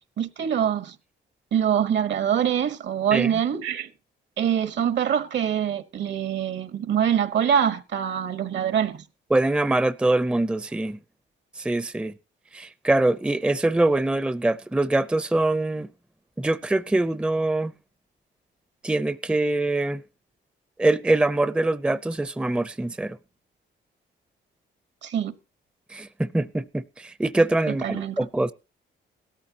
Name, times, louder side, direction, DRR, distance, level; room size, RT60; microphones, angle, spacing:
voice 1, 0.2-0.9 1.5-3.9 4.4-9.0 25.0-25.3 27.7-28.1, right 9 dB, 65° right, 1.2 m, -24 dB
voice 2, 9.3-11.0 11.6-12.1 12.5-15.9 16.4-17.7 18.8-20.0 20.8-23.2 25.9-28.5, right 2 dB, 5° right, 0.5 m, -23 dB
17.0 x 13.5 x 2.8 m
cardioid pair, 90°, 20 cm